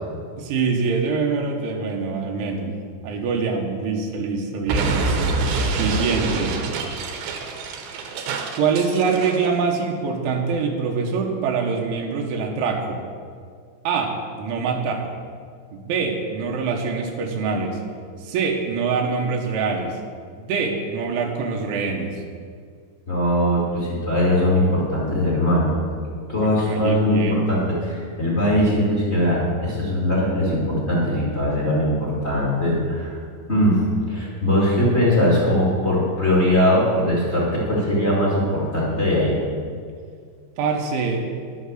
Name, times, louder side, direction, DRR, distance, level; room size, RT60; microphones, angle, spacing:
voice 1, 0.4-5.0 5.7-6.6 8.6-13.0 13.8-15.1 15.7-17.8 18.2-20.0 20.4-22.2 26.4-27.6 40.6-41.3, right 5 dB, 90° right, 1 dB, 3.6 m, -24 dB
Explosion, 4.7-9.5, right 3 dB, 75° right, 2.9 m, -26 dB
voice 2, 23.1-25.8 26.3-33.2 33.5-39.4, left 1 dB, 45° left, -6 dB, 0.8 m, -20 dB
11.5 x 7.9 x 6.4 m, 2.1 s
omnidirectional pair, 5.3 m